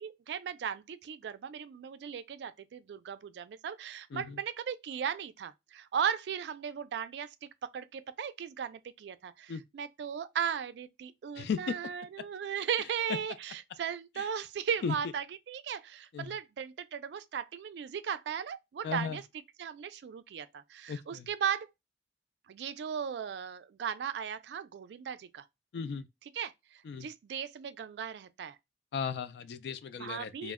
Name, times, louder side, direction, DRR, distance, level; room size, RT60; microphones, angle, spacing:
voice 1, 0.0-19.2 19.6-21.7 22.5-25.4 26.3-28.6 30.0-30.5, right 8 dB, 70° right, 0.3 m, -37 dB
voice 2, 11.4-11.7 14.2-14.3 14.8-15.0 16.1-16.4 18.8-19.2 20.9-21.3 25.7-26.1 26.8-27.1 28.9-30.5, left 6 dB, 65° left, 0.3 m, -36 dB
2.1 x 2.0 x 3.4 m
head